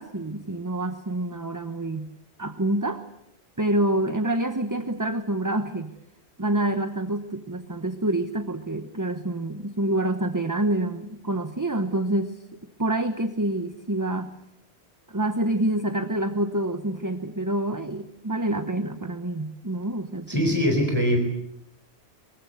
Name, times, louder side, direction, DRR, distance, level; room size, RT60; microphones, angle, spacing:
voice 1, 0.0-2.1 2.4-3.0 3.6-5.9 6.4-12.4 12.8-14.3 15.1-20.6, right 1 dB, 20° right, 9 dB, 1.0 m, -27 dB
voice 2, 20.3-21.2, equal, 25° left, 3 dB, 4.4 m, -22 dB
23.5 x 23.0 x 8.2 m, 0.81 s
omnidirectional pair, 1.1 m